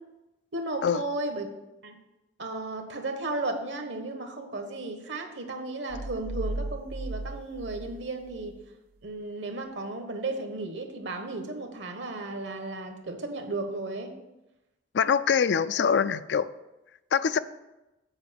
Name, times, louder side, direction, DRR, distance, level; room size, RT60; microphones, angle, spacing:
voice 1, 0.5-1.5 1.8-2.0 2.4-8.5 9.0-14.1 17.3-17.4, right 2 dB, 70° right, 1.3 m, -34 dB
sound 1, 5.9-8.7, right 2 dB, 50° right, 0.5 m, -36 dB
voice 2, 14.9-16.5 17.1-17.4, left 7 dB, 60° left, 0.3 m, -24 dB
8.0 x 4.9 x 6.9 m
head